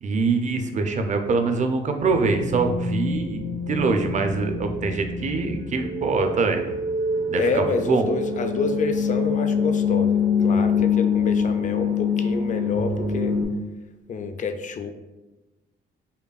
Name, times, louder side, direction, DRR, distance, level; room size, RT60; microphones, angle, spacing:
voice 1, 0.0-6.8 7.3-8.0, right 4 dB, 40° right, 6 dB, 0.5 m, -24 dB
sound 1, 2.1-13.5, left 4 dB, 75° right, 0.8 m, -25 dB
voice 2, 7.4-13.4 14.1-14.9, left 4 dB, 40° left, 8 dB, 0.4 m, -28 dB
5.1 x 2.2 x 2.3 m, 1.1 s
cardioid pair, 90°, 20 cm